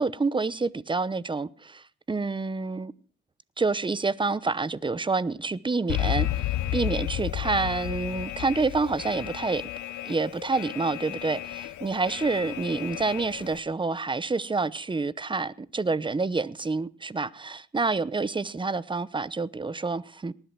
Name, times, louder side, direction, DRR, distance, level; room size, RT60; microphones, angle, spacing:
voice 1, 0.0-2.9 3.6-9.6 10.0-20.3, right 3 dB, 15° right, 0.8 m, -28 dB
Alarm, 5.9-13.6, left 14 dB, 75° left, 1.0 m, -32 dB
18.5 x 11.5 x 6.1 m
cardioid pair, 90°, 30 cm